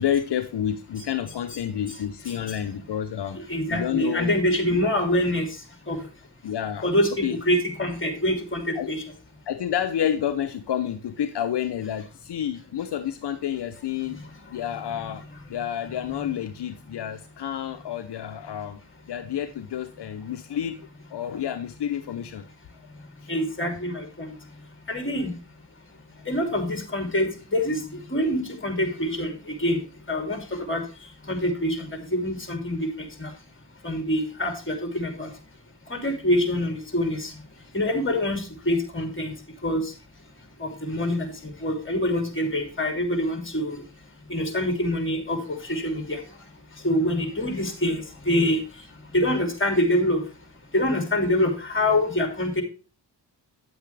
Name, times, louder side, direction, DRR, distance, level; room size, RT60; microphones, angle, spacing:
voice 1, 0.0-3.4 3.7-4.3 4.7-4.8 6.4-6.8 7.2-7.4 8.8-8.9 9.5-14.2 14.5-15.2 15.5-18.8 19.1-20.8 21.1-22.4, left 10 dB, 70° left, 8 dB, 0.8 m, -29 dB
voice 2, 2.3-2.6 3.3-5.6 5.9-6.0 6.8-9.0 23.3-24.3 24.9-25.3 26.3-30.8 31.2-33.3 33.8-35.3 35.9-37.3 37.7-39.3 39.6-39.9 40.6-43.8 44.3-46.2 46.8-48.9 49.1-50.2 50.7-52.6, left 1 dB, 30° left, 5 dB, 3.0 m, -25 dB
9.5 x 8.0 x 3.3 m, 0.35 s
cardioid pair, 75°, 42 cm